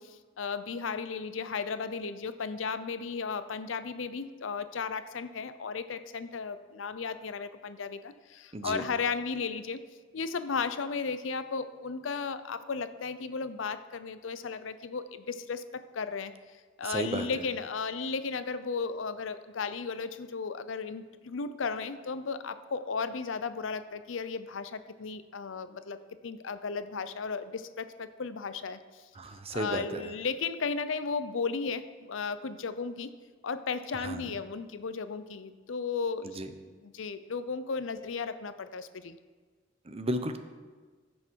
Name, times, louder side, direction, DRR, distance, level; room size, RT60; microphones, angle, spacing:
voice 1, 0.0-9.8 10.1-16.3 16.8-26.0 26.2-28.8 29.5-33.1 33.4-36.4 36.8-39.2, left 5 dB, 90° left, 12 dB, 0.6 m, -35 dB
voice 2, 8.5-8.8 16.8-17.3 29.2-30.0 33.9-34.3 36.4-36.5 39.9-40.4, right 1 dB, 30° right, 8 dB, 0.8 m, -33 dB
15.0 x 6.4 x 4.6 m, 1.4 s
head